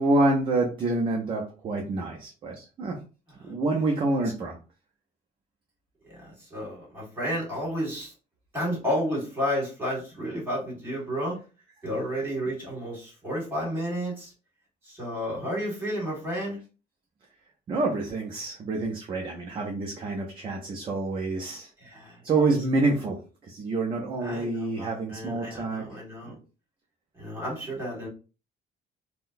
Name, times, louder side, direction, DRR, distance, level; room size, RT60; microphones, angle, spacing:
voice 1, 0.0-3.0 3.4-4.6 17.7-21.7 22.2-25.8 26.2-26.4, right 2 dB, 30° right, 1 dB, 0.5 m, -27 dB
voice 2, 6.0-8.1 8.5-11.4 11.8-14.3 14.8-16.6 21.8-22.2 24.2-26.4 27.2-28.1, equal, 15° right, -4 dB, 1.7 m, -31 dB
3.8 x 2.2 x 2.5 m, 0.34 s
cardioid pair, 165°, 17 cm